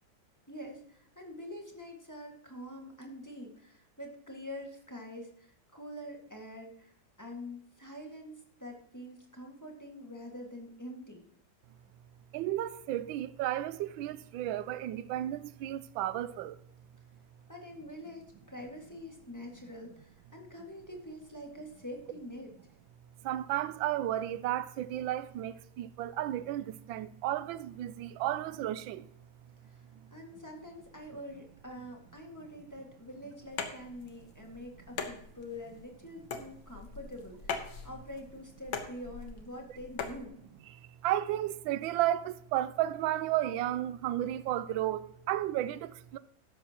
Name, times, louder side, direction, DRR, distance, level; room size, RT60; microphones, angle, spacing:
voice 1, 0.5-11.3 17.5-22.5 29.6-29.8 30.1-40.4, left 1 dB, 10° left, 1.7 m, -45 dB
voice 2, 12.3-16.6 23.2-29.1 41.0-46.2, right 13 dB, 85° right, 1.3 m, -33 dB
wood on wood light hit, 33.4-40.2, left 6 dB, 80° left, 1.9 m, -41 dB
13.0 x 11.0 x 2.9 m
omnidirectional pair, 2.1 m